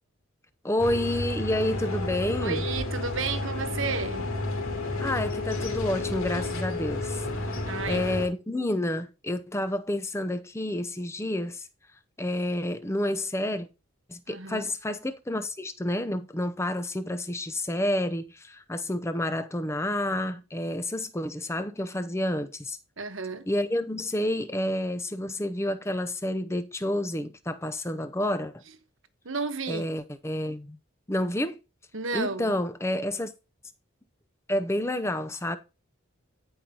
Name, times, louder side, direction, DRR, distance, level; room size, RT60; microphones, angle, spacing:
voice 1, 0.6-2.6 5.0-7.6 7.9-11.6 12.2-13.7 14.1-22.8 23.5-28.6 29.7-30.8 31.1-31.6 32.1-33.3 34.5-35.6, left 1 dB, 15° left, 0.6 m, -29 dB
sound 1, 0.8-8.3, left 2 dB, 85° left, 3.0 m, -31 dB
voice 2, 2.4-4.3 7.6-8.1 14.3-14.7 23.0-23.5 29.2-29.9 31.9-32.6, right 4 dB, 70° right, 1.2 m, -32 dB
14.5 x 5.4 x 2.8 m
head